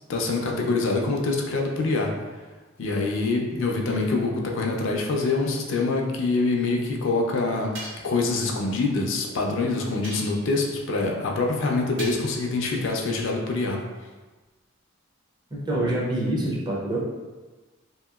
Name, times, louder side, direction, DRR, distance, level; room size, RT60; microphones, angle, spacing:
voice 1, 0.1-2.2 2.8-13.8, left 3 dB, 60° left, 0 dB, 0.4 m, -25 dB
sound 1, 7.7-8.2 10.0-10.6 12.0-12.4, right 1 dB, 60° right, 0.8 m, -39 dB
voice 2, 15.5-17.0, right 1 dB, 20° right, -4 dB, 0.4 m, -26 dB
2.8 x 2.7 x 2.3 m, 1.2 s
head